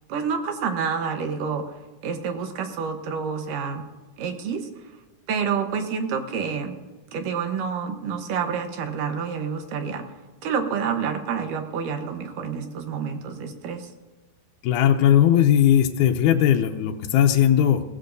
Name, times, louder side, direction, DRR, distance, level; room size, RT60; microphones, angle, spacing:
voice 1, 0.1-1.6 2.0-3.9 4.2-4.7 5.3-6.8 7.1-10.0 10.4-13.9, right 6 dB, 80° right, 6 dB, 2.7 m, -28 dB
voice 2, 14.6-17.8, left 10 dB, 75° left, 4 dB, 2.1 m, -18 dB
21.5 x 16.5 x 2.7 m, 1.2 s
omnidirectional pair, 3.8 m